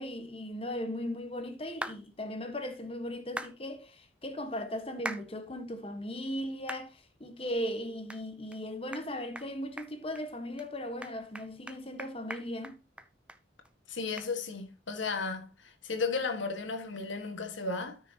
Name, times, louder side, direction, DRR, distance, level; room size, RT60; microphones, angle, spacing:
voice 1, 0.0-12.8, equal, 30° left, 1.3 m, -37 dB
sound 1, 1.8-2.0 3.4-3.5 5.1-5.3 5.8-5.9 6.7-6.9 7.3-7.4 8.1-8.2 8.5-8.6 8.9-9.1 9.4-9.5 9.8-10.2 10.6-10.7 11.0-13.4 13.7-13.8 14.2-14.3, right 1 dB, 5° right, 0.5 m, -40 dB
voice 2, 13.9-18.0, left 4 dB, 85° left, 1.6 m, -34 dB
13.0 x 6.2 x 2.9 m
head